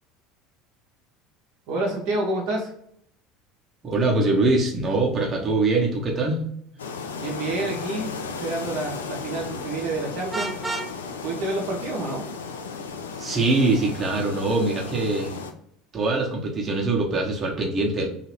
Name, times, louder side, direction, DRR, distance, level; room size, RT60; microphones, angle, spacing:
voice 1, 1.7-2.7 7.2-10.5 11.2-12.3, right 2 dB, 65° right, -2 dB, 0.7 m, -28 dB
voice 2, 3.8-6.4 13.2-15.3 15.9-18.1, right 2 dB, 30° right, -1 dB, 0.8 m, -23 dB
sound 1, 6.8-15.5, left 5 dB, 80° left, 0.3 m, -35 dB
Vehicle horn car horn honking, 10.3-10.9, right 3 dB, 10° right, 0.3 m, -30 dB
2.8 x 2.5 x 3.0 m, 0.70 s
figure-of-eight pair, 70°, 0 cm